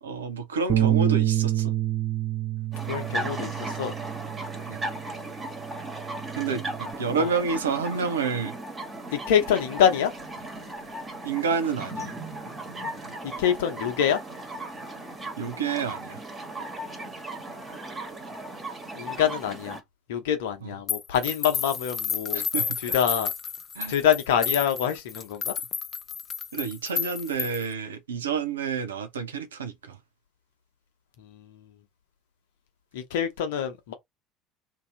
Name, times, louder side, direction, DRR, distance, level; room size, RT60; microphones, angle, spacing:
voice 1, 0.0-1.7 4.7-4.8 6.3-8.5 11.2-12.1 15.4-16.2 20.6-20.7 22.3-22.8 23.7-23.9 26.5-30.0, right 5 dB, 75° right, 0.6 m, -29 dB
Bass guitar, 0.7-5.2 5.6-6.9, right 12 dB, 40° right, 0.9 m, -28 dB
sound 1, 2.7-19.8, right 1 dB, 25° right, 1.5 m, -37 dB
voice 2, 2.9-3.9 7.2-7.3 9.1-10.1 13.2-14.2 18.9-19.8 20.1-22.5 22.8-23.3 23.9-25.5 31.2-31.7 32.9-33.9, left 9 dB, 65° left, 0.8 m, -25 dB
sound 2, 20.9-27.7, left 6 dB, 35° left, 0.5 m, -31 dB
2.8 x 2.7 x 3.7 m
figure-of-eight pair, 65°, 0 cm